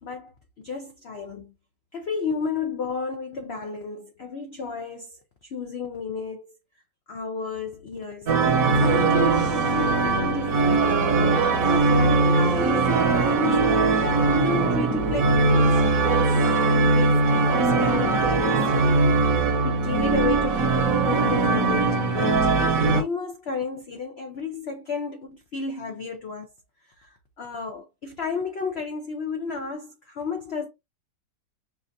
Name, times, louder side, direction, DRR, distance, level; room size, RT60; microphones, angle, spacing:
voice 1, 0.0-1.5 1.9-6.5 7.1-11.0 11.5-19.1 19.6-26.5 27.0-30.7, left 5 dB, 85° left, 0.5 m, -33 dB
sound 1, 8.3-23.0, right 3 dB, 60° right, 1.0 m, -20 dB
5.8 x 2.4 x 2.6 m
omnidirectional pair, 1.9 m